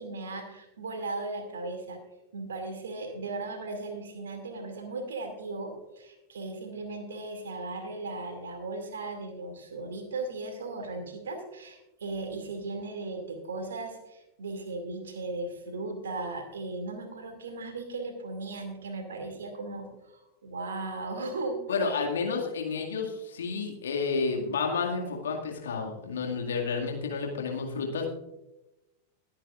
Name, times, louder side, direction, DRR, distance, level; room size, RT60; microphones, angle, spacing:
voice 1, 0.0-2.0 2.3-22.1, right 3 dB, 65° right, 5 dB, 2.4 m, -37 dB
voice 2, 21.7-28.1, left 4 dB, 65° left, 1 dB, 2.0 m, -30 dB
21.0 x 8.9 x 2.5 m, 0.98 s
figure-of-eight pair, 90°, 0 cm